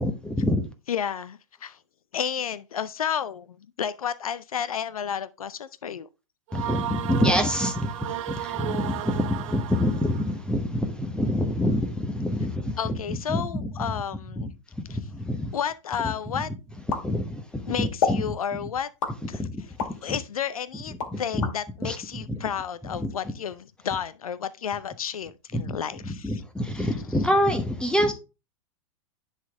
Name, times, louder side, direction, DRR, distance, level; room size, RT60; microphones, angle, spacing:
voice 1, 0.0-0.6 6.5-12.8 13.3-13.7 14.4-14.5 14.9-15.5 17.0-18.2 19.4-19.5 19.9-20.2 21.1-21.5 21.8-22.0 22.3-22.4 23.0-23.1 25.5-25.8 26.2-28.1, left 1 dB, 5° left, 1.1 m, -26 dB
voice 2, 0.9-1.8 2.1-3.5 3.8-6.1 12.8-14.5 14.9-15.0 15.5-16.5 17.7-18.9 19.3-19.7 20.0-26.4 26.7-26.9, left 8 dB, 85° left, 0.5 m, -31 dB
sound 1, 6.5-10.3, right 13 dB, 60° right, 0.5 m, -34 dB
sound 2, 16.9-17.6 18.0-18.3 19.0-20.0 20.5-21.6, left 6 dB, 60° left, 2.0 m, -29 dB
10.0 x 4.1 x 3.6 m
hypercardioid pair, 105°, 18 cm